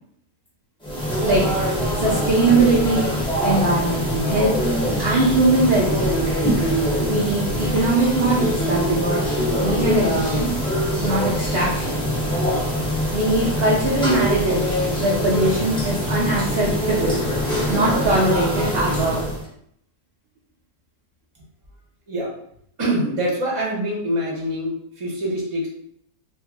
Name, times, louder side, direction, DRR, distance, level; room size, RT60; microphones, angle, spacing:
sound 1, 0.8-19.4, equal, 5° left, 0.5 m, -23 dB
voice 1, 2.0-3.1 3.4-4.5 5.0-6.1 7.1-9.2 9.6-10.5 11.0-12.0 13.1-17.2 17.7-19.2, right 2 dB, 55° right, -6 dB, 0.6 m, -21 dB
voice 2, 22.8-25.7, right 1 dB, 25° right, -4 dB, 0.8 m, -25 dB
2.9 x 2.6 x 3.6 m, 0.70 s
omnidirectional pair, 1.8 m